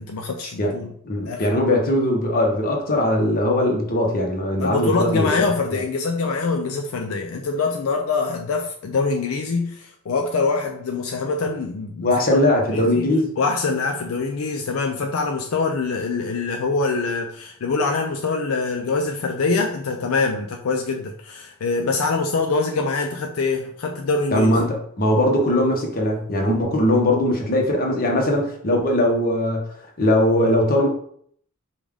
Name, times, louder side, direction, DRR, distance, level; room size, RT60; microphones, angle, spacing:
voice 1, 0.0-0.9 1.2-1.4 4.6-12.4 12.7-24.6, left 4 dB, 75° left, 3 dB, 0.5 m, -24 dB
voice 2, 1.0-5.3 12.0-13.3 24.3-29.6 30.0-30.9, left 1 dB, 45° left, 0 dB, 1.0 m, -20 dB
5.1 x 2.4 x 3.6 m, 0.62 s
head